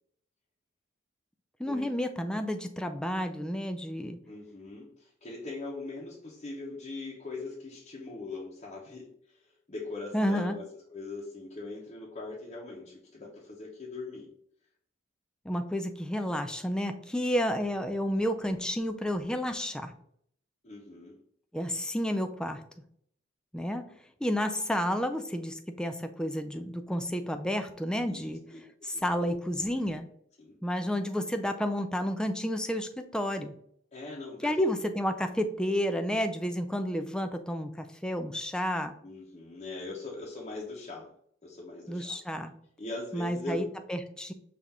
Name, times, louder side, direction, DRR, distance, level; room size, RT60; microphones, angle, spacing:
voice 1, 1.6-4.2 10.1-10.6 15.5-19.9 21.5-22.6 23.5-23.9 24.2-28.4 28.8-30.0 30.6-33.5 34.4-38.9 41.9-42.5 43.1-44.3, equal, 5° left, 7 dB, 0.3 m, -31 dB
voice 2, 4.3-14.3 20.6-21.2 28.1-28.6 28.9-29.2 30.4-30.6 33.9-34.7 39.0-41.1 41.4-42.2 42.8-43.7, left 3 dB, 35° left, -5 dB, 0.8 m, -41 dB
5.6 x 2.5 x 3.5 m, 0.65 s
head